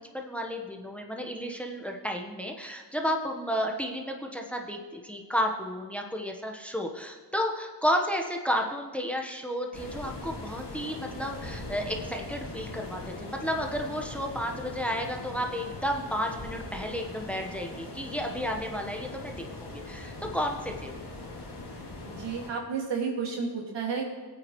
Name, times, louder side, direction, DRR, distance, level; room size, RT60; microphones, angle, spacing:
voice 1, 0.1-21.0, equal, 5° left, 2 dB, 1.3 m, -32 dB
sound 1, 9.7-22.5, left 2 dB, 70° left, 2.3 m, -41 dB
voice 2, 22.0-24.1, right 5 dB, 80° right, -1 dB, 2.5 m, -32 dB
16.5 x 8.7 x 3.2 m, 1.4 s
cardioid pair, 60°, 43 cm